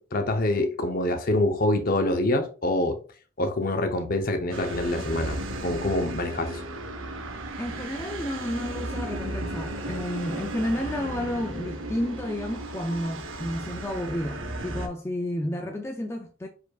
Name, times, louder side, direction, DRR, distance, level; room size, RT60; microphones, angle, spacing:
voice 1, 0.1-3.0 3.4-6.6, left 1 dB, 45° left, 0.7 m, -26 dB
sound 1, 4.5-14.9, right 1 dB, 80° right, 0.7 m, -35 dB
voice 2, 7.6-16.5, left 1 dB, 15° left, 0.3 m, -31 dB
4.6 x 4.5 x 2.3 m
head